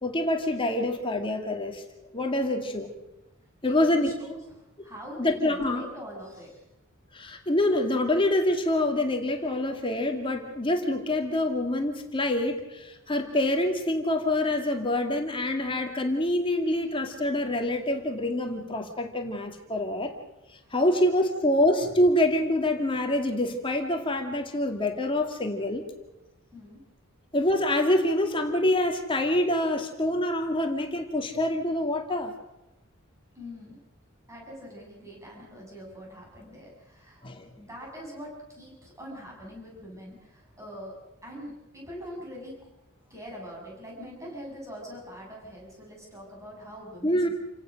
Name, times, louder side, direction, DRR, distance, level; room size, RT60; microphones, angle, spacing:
voice 1, 0.0-1.8 2.1-2.9 3.6-4.1 5.2-5.8 7.1-20.1 20.7-25.9 27.3-32.3 37.2-37.5 47.0-47.3, left 1 dB, 25° left, 4 dB, 2.2 m, -26 dB
voice 2, 3.6-6.6 16.6-16.8 20.6-20.9 26.5-26.8 33.3-33.8 34.3-37.2 37.6-42.5 43.1-47.3, equal, 15° right, -2 dB, 7.7 m, -43 dB
29.0 x 17.5 x 6.4 m, 0.95 s
head